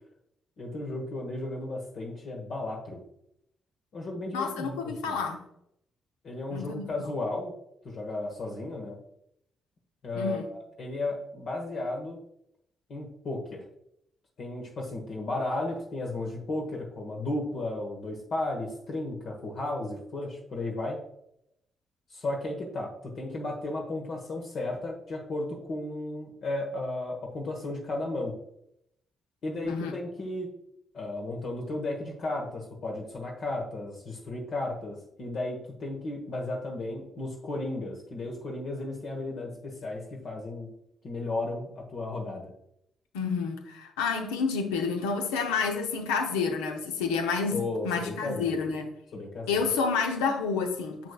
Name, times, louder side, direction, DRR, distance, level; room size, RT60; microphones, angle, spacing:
voice 1, 0.6-3.0 3.9-5.2 6.2-7.5 7.8-9.0 10.0-12.2 12.9-13.7 14.4-21.0 22.1-28.3 29.4-30.5 30.9-40.7 41.0-42.5 47.5-48.7 49.1-49.6, left 2 dB, 60° left, 1.2 m, -34 dB
voice 2, 4.3-5.4 6.5-6.9 10.1-10.5 29.6-29.9 43.1-48.9 49.5-51.1, left 5 dB, 85° left, 0.7 m, -29 dB
6.8 x 6.0 x 2.3 m
hypercardioid pair, 40°, 0 cm